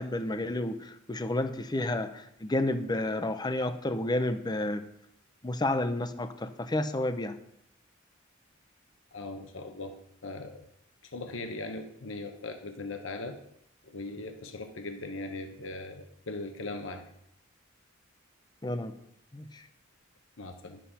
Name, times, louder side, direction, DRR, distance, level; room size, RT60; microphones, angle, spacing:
voice 1, 0.0-4.8 5.4-7.4 18.6-18.9 19.3-19.6, left 1 dB, 20° left, 10 dB, 0.7 m, -31 dB
voice 2, 9.1-10.0 10.2-10.7 11.0-13.4 13.8-17.1 20.4-20.8, left 2 dB, 65° left, 6 dB, 1.0 m, -39 dB
12.0 x 7.5 x 5.6 m, 0.75 s
head